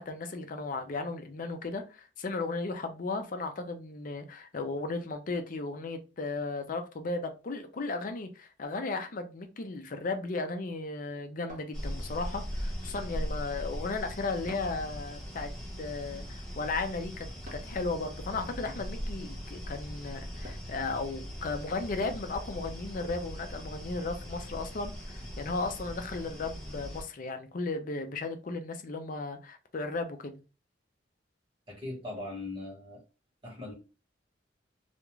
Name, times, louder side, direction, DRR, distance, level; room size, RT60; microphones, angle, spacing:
voice 1, 0.0-15.5 15.8-30.4, left 3 dB, 45° left, 0.5 m, -35 dB
sound 1, 11.5-12.4 14.5-14.9 17.4-17.9 20.4-20.9, left 1 dB, 45° right, 0.8 m, -50 dB
sound 2, 11.7-27.0, equal, 5° left, 0.9 m, -40 dB
voice 2, 31.7-33.0 33.4-33.7, left 2 dB, 25° right, 1.2 m, -39 dB
2.4 x 2.3 x 3.0 m
head